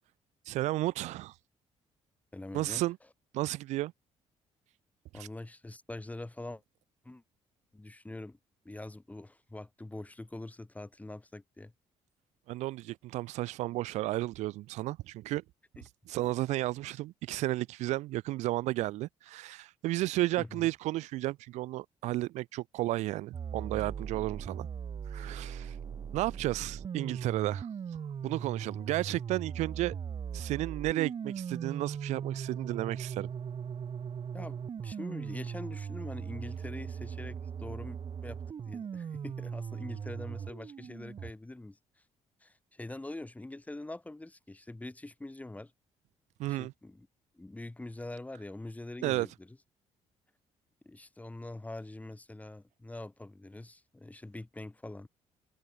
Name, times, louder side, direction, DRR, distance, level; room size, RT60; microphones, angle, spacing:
voice 1, 0.5-1.3 2.5-3.0 3.3-3.9 5.1-5.3 12.5-15.4 16.1-24.7 25.1-25.8 26.1-27.7 28.2-30.0 30.3-33.3 46.4-46.7 49.0-49.3, right 17 dB, 80° right, 0.4 m, -33 dB
voice 2, 2.3-2.8 5.1-6.6 7.0-7.2 7.7-8.4 8.6-11.7 15.8-15.9 20.4-20.7 34.3-38.4 38.7-41.8 42.4-45.7 46.5-47.1 47.3-49.5 50.8-55.1, left 2 dB, 10° left, 3.9 m, -44 dB
sound 1, 23.3-41.3, right 7 dB, 45° right, 2.5 m, -39 dB
cardioid pair, 85°, 12 cm